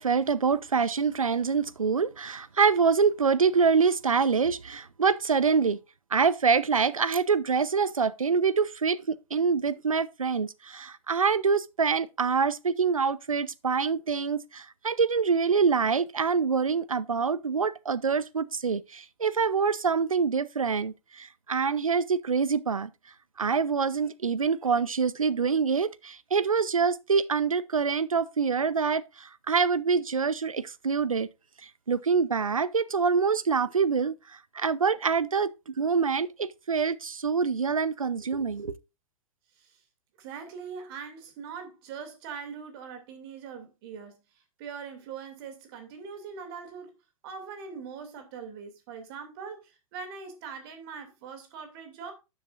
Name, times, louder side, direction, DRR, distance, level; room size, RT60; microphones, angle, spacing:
voice 1, 0.0-5.8 6.1-22.9 23.4-31.3 31.9-38.7, right 5 dB, 85° right, 0.7 m, -25 dB
voice 2, 40.2-46.9 47.2-52.1, right 6 dB, 45° right, 2.6 m, -42 dB
12.5 x 7.4 x 2.5 m
figure-of-eight pair, 105°, 17 cm